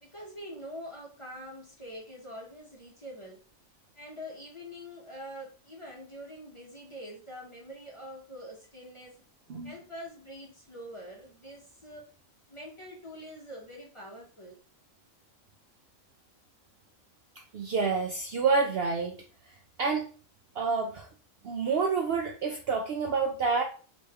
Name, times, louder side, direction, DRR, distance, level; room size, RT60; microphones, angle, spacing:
voice 1, 0.0-3.4 3.9-9.2 9.6-12.1 12.5-14.6, equal, 30° left, -2 dB, 0.7 m, -45 dB
voice 2, 17.4-19.2 19.8-20.1 20.5-21.1 21.4-23.6, right 4 dB, 65° right, 2 dB, 0.6 m, -28 dB
3.1 x 3.0 x 3.3 m, 0.39 s
omnidirectional pair, 1.4 m